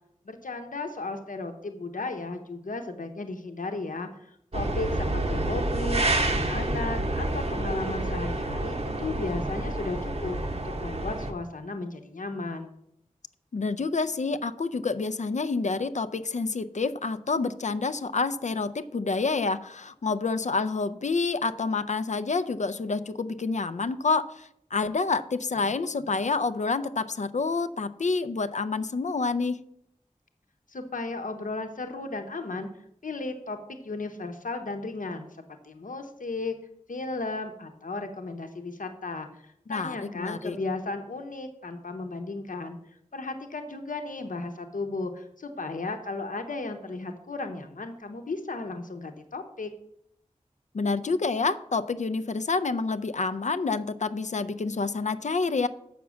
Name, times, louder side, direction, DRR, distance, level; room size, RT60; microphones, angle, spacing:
voice 1, 0.2-12.7 30.7-32.7 33.0-35.3 35.6-36.5 36.9-42.8 43.1-49.7, left 3 dB, 90° left, 6 dB, 0.9 m, -35 dB
sound 1, 4.5-11.3, right 1 dB, 50° right, 0.9 m, -28 dB
voice 2, 13.5-29.6 39.7-40.6 50.7-55.7, left 4 dB, 65° left, 11 dB, 0.5 m, -28 dB
7.1 x 6.0 x 6.2 m, 0.75 s
wide cardioid pair, 60°, 13 cm